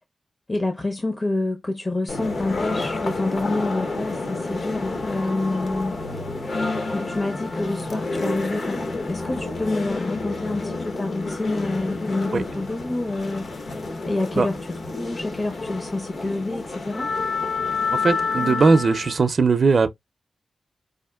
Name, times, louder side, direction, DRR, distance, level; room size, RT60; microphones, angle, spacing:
voice 1, 0.5-6.0 6.9-13.5 14.1-17.1, left 2 dB, 30° left, 0.6 m, -28 dB
sound 1, 2.1-19.2, left 3 dB, 60° left, 0.8 m, -29 dB
voice 2, 18.0-19.9, right 4 dB, 50° right, 0.4 m, -19 dB
4.9 x 2.4 x 2.2 m
wide cardioid pair, 140°, 0 cm